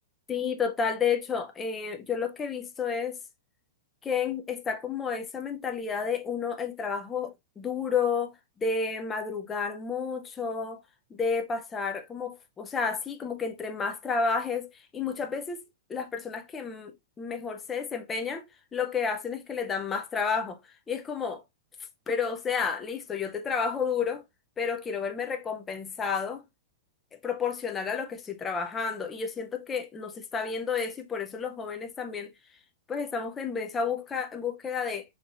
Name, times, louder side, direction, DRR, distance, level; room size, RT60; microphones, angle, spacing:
voice 1, 0.3-3.2 4.0-10.8 11.2-15.6 15.9-20.6 20.9-21.4 22.1-24.2 24.6-26.4 27.2-32.3 32.9-35.0, left 5 dB, 10° left, 0.4 m, -31 dB
4.5 x 2.5 x 4.1 m
supercardioid pair, 175°, 0 cm